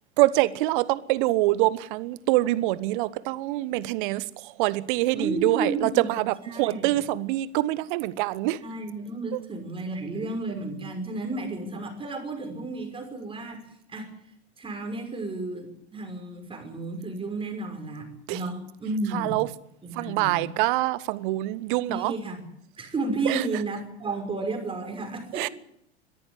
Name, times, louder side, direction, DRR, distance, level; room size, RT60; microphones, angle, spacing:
voice 1, 0.2-8.6 9.3-9.4 18.3-18.4 19.1-19.5 19.9-22.1 23.2-23.6 25.3-25.5, right 18 dB, 45° right, 1.3 m, -25 dB
voice 2, 5.1-6.1 6.5-6.9 8.6-13.6 13.9-14.1 14.6-19.3 19.8-20.5 21.9-22.4 22.8-25.4, right 2 dB, 15° right, 6.0 m, -32 dB
21.5 x 14.5 x 9.8 m
figure-of-eight pair, 95°, 33 cm